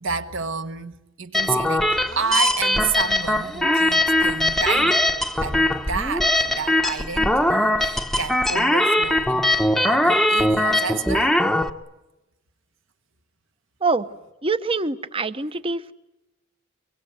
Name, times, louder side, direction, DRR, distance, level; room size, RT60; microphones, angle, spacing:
voice 1, 0.0-5.0 5.4-11.3, right 5 dB, 65° right, 1.6 m, -30 dB
sound 1, 1.3-11.7, left 1 dB, ahead, 0.9 m, -21 dB
voice 2, 14.4-15.9, right 3 dB, 25° right, 0.9 m, -24 dB
24.5 x 23.5 x 9.4 m
head